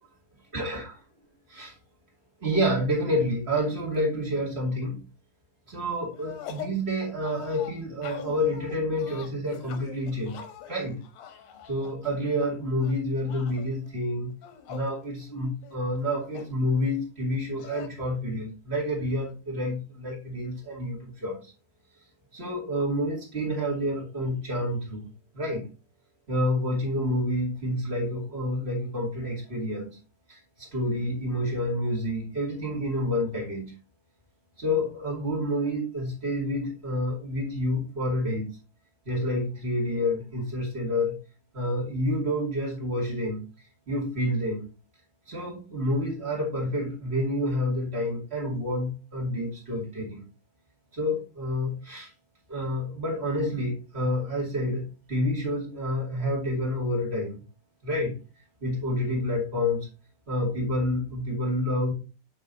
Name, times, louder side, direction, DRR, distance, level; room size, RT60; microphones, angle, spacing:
voice 1, 0.5-0.9 1.5-1.7 2.4-5.0 5.7-10.4 10.7-11.0 11.7-14.3 14.7-21.4 22.3-25.0 25.3-25.6 26.3-29.9 30.3-30.4 30.7-33.7 34.6-38.5 39.0-41.1 41.5-43.4 43.9-44.6 45.3-50.2 50.9-52.1 52.5-57.4 57.8-58.1 58.6-59.8 60.3-61.9, left 1 dB, 35° right, -2 dB, 0.9 m, -28 dB
sound 1, 6.1-6.8 7.2-12.5 12.8-13.7 14.3-14.9 15.3-15.4 15.6-16.6 17.6-17.9, left 8 dB, 70° left, 2.4 m, -43 dB
8.5 x 4.5 x 4.1 m, 0.33 s
omnidirectional pair, 5.0 m